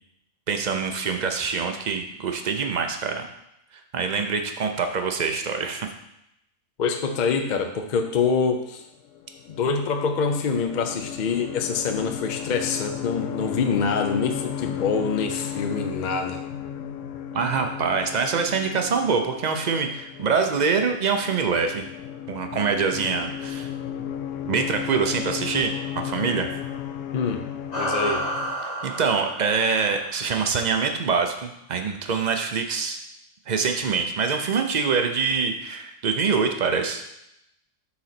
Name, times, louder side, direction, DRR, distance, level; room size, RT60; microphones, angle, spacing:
voice 1, 0.5-3.3 3.9-5.9 17.3-21.8 22.3-23.7 24.4-26.5 28.8-33.0 33.5-37.0, right 5 dB, 50° right, 5 dB, 0.5 m, -25 dB
voice 2, 6.8-8.8 9.6-16.4 27.1-27.4 27.7-28.2, left 5 dB, 50° left, 5 dB, 0.5 m, -25 dB
sound 1, 9.1-28.6, left 9 dB, 75° left, 0.9 m, -34 dB
sound 2, 27.7-30.5, right 1 dB, 30° left, 1.4 m, -30 dB
5.7 x 4.0 x 5.8 m, 0.82 s
omnidirectional pair, 1.4 m